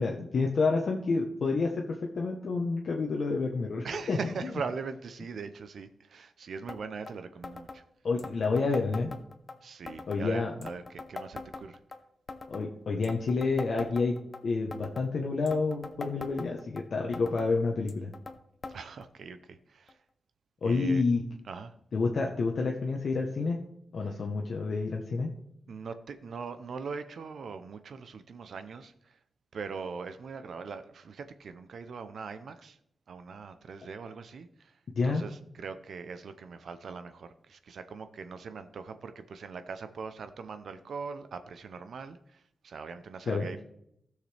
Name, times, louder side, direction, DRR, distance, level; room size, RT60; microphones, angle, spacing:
voice 1, 0.0-4.2 8.0-9.1 10.1-10.5 12.5-14.1 14.4-18.1 20.6-21.2 21.9-23.6 23.9-25.3 35.0-35.2 43.3-43.6, left 4 dB, 55° left, 0 dB, 1.0 m, -29 dB
voice 2, 3.8-7.8 9.6-11.8 18.7-20.0 20.6-21.0 21.5-21.7 25.7-29.2 29.5-32.8 33.1-34.8 35.0-43.6, right 5 dB, 65° right, 10 dB, 0.6 m, -41 dB
sound 1, 6.7-6.8 7.1-7.2 7.4-7.8 8.2-9.6 9.9-10.2 10.6-12.0 12.3-12.7 13.0-14.4 14.7-15.1 15.5-16.8 17.1-17.5 17.9-18.4 18.6-18.8 19.0-19.1 19.9-20.0 20.8-20.9, left 3 dB, 30° left, 0.7 m, -42 dB
16.0 x 6.5 x 3.4 m, 0.76 s
wide cardioid pair, 160°, 0 cm